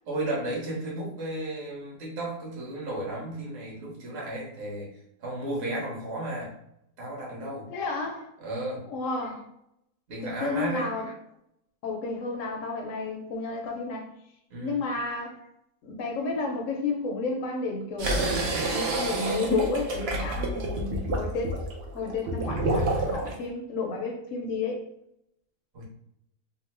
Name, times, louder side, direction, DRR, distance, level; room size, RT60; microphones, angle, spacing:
voice 1, 0.1-4.9 5.2-6.5 7.0-7.7 8.4-8.9 10.1-10.9 14.5-14.8 25.7-25.8, right 1 dB, 45° right, -4 dB, 1.1 m, -33 dB
voice 2, 7.7-8.3 8.9-9.5 10.4-11.1 11.8-14.1 14.6-15.5 15.8-18.3 18.7-21.5 21.9-24.8, left 3 dB, 70° left, 1 dB, 0.8 m, -31 dB
sound 1, 18.0-23.3, right 2 dB, 75° right, 0.5 m, -28 dB
2.8 x 2.0 x 3.1 m, 0.76 s
omnidirectional pair, 1.8 m